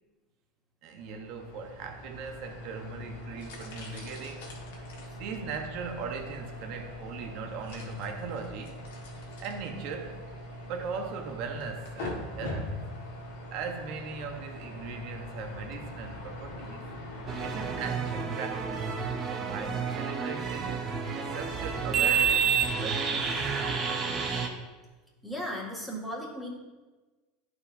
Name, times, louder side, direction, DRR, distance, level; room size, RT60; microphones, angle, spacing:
voice 1, 0.8-4.5 4.8-8.8 9.2-10.2 10.7-12.7 13.5-16.9 17.4-18.9 19.3-20.8 21.1-23.5, right 5 dB, 55° right, 0.9 m, -39 dB
sound 1, 1.0-17.9, left 1 dB, 85° left, 1.6 m, -42 dB
sound 2, 17.3-24.5, right 6 dB, 30° right, 1.0 m, -29 dB
voice 2, 25.2-26.5, equal, ahead, 1.8 m, -36 dB
11.0 x 4.9 x 2.6 m
supercardioid pair, 120°, 0 cm